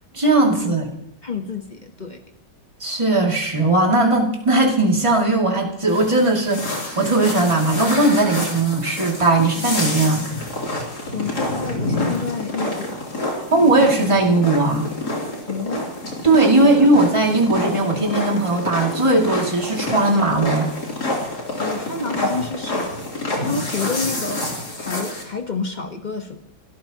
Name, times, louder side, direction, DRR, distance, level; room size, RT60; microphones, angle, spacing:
voice 1, 0.1-0.9 2.8-10.3 13.5-14.9 16.2-20.7, right 2 dB, 15° right, 0 dB, 2.6 m, -18 dB
voice 2, 1.2-2.2 11.1-13.1 15.5-15.9 16.6-16.9 21.6-23.0 23.4-24.5 24.8-26.4, left 4 dB, 30° left, 5 dB, 1.2 m, -29 dB
sound 1, 5.9-25.2, left 1 dB, 60° left, 4.1 m, -28 dB
30.0 x 13.5 x 3.0 m, 0.76 s
omnidirectional pair, 1.9 m